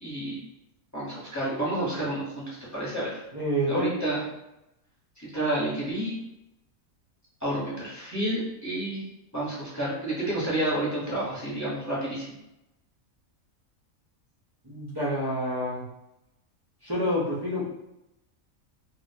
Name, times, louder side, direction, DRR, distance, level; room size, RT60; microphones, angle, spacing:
voice 1, 0.0-0.4 0.9-3.2 3.7-4.2 5.2-6.1 7.4-9.0 9.3-12.3, right 1 dB, 15° left, -8 dB, 1.0 m, -30 dB
voice 2, 3.3-3.9 14.6-15.8 16.8-17.7, equal, 30° right, -8 dB, 0.5 m, -28 dB
2.4 x 2.3 x 4.0 m, 0.90 s
omnidirectional pair, 1.5 m